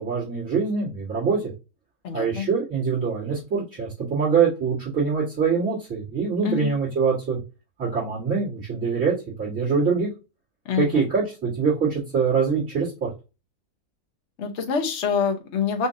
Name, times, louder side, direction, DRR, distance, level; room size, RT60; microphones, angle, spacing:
voice 1, 0.0-1.4 2.1-7.4 7.8-10.1 10.8-13.1, right 5 dB, 60° right, -7 dB, 2.5 m, -24 dB
voice 2, 2.0-2.5 6.4-6.7 10.7-11.0 14.4-15.9, left 6 dB, 55° left, 3 dB, 1.1 m, -26 dB
5.0 x 2.6 x 2.6 m, 0.28 s
omnidirectional pair, 1.5 m